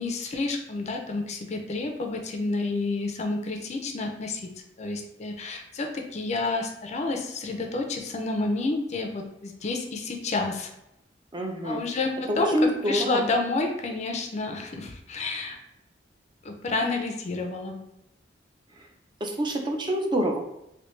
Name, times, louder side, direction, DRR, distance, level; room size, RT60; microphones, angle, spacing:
voice 1, 0.0-4.5 4.8-10.7 11.6-15.6 16.4-17.8, left 3 dB, 40° left, 4 dB, 0.4 m, -29 dB
voice 2, 11.3-11.8 12.3-13.2 19.2-20.4, equal, 25° right, 2 dB, 0.5 m, -26 dB
3.2 x 2.7 x 3.1 m, 0.84 s
head